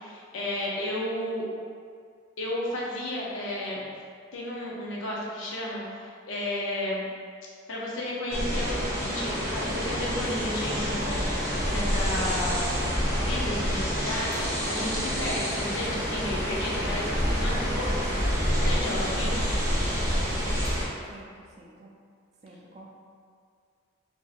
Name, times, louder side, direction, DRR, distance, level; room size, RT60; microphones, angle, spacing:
voice 1, 0.0-1.4 2.4-3.8 4.3-7.1 7.7-12.7 13.2-18.1 18.5-19.4, left 1 dB, 80° left, -4 dB, 0.7 m, -33 dB
sound 1, 8.3-20.8, equal, 15° right, 0.7 m, -28 dB
sound 2, 14.3-20.9, right 1 dB, 55° right, 0.9 m, -46 dB
voice 2, 19.9-20.7 21.1-21.9 22.4-22.9, right 1 dB, 35° right, -2 dB, 0.4 m, -49 dB
3.7 x 2.6 x 2.5 m, 2.1 s
head